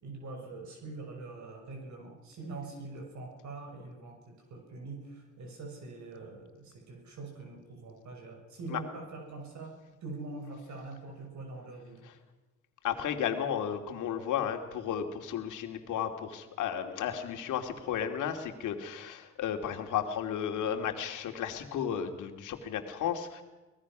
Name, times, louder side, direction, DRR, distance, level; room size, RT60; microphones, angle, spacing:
voice 1, 0.0-9.7 10.0-12.0, right 3 dB, 70° right, 2 dB, 6.7 m, -44 dB
voice 2, 12.8-23.4, left 9 dB, 85° left, 6 dB, 2.6 m, -33 dB
24.5 x 19.0 x 6.1 m, 1.2 s
cardioid pair, 90°, 30 cm